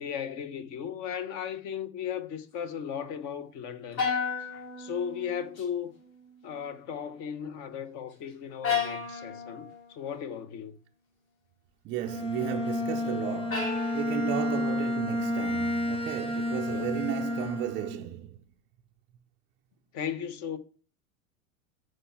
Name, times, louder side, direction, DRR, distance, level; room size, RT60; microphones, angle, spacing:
voice 1, 0.0-4.1 4.5-5.9 6.4-10.8 16.7-16.9 19.9-20.6, left 8 dB, 45° left, 1.1 m, -36 dB
sound 1, 4.0-5.6 6.0-6.5 8.6-9.9 13.5-14.6, left 5 dB, 85° left, 2.6 m, -33 dB
voice 2, 11.8-18.4, right 13 dB, 30° right, 0.4 m, -34 dB
Bowed string instrument, 12.0-18.1, left 2 dB, 15° left, 1.2 m, -31 dB
8.0 x 4.5 x 5.8 m
hypercardioid pair, 110°, 41 cm